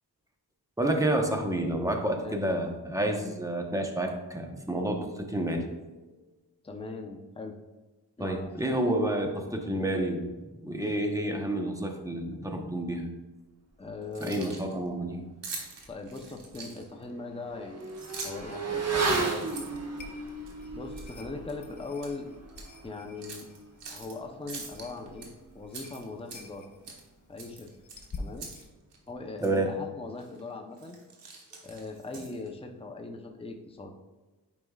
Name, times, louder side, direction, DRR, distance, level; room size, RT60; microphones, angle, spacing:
voice 1, 0.8-5.7 8.2-13.1 14.2-15.2 29.4-29.7, right 1 dB, 10° right, 3 dB, 1.0 m, -29 dB
voice 2, 2.2-2.6 6.6-7.6 8.2-9.1 13.8-14.6 15.9-17.9 18.2-19.8 20.7-22.3 22.8-23.5 23.9-25.3 25.5-26.7 27.3-27.7 28.2-28.5 29.1-31.0 31.6-33.9, left 3 dB, 15° left, 3 dB, 0.7 m, -40 dB
Keys jangling, 14.0-14.7 15.4-17.0 17.8-18.5 19.0-20.5 21.0-21.2 21.5-22.1 22.5-22.7 23.2-24.1 24.5-25.3 25.7-26.6 26.8-27.1 27.4-28.6 28.9-29.0 29.4-29.6 30.2-30.4 30.7-32.5, right 4 dB, 90° right, 1.3 m, -43 dB
Motorcycle / Accelerating revving vroom, 15.8-15.9 16.3-26.3 26.6-26.7, right 4 dB, 40° right, 1.2 m, -36 dB
sound 1, 17.9-28.7, left 2 dB, 45° left, 0.9 m, -49 dB
9.5 x 5.3 x 2.4 m, 1.2 s
cardioid pair, 75°, 41 cm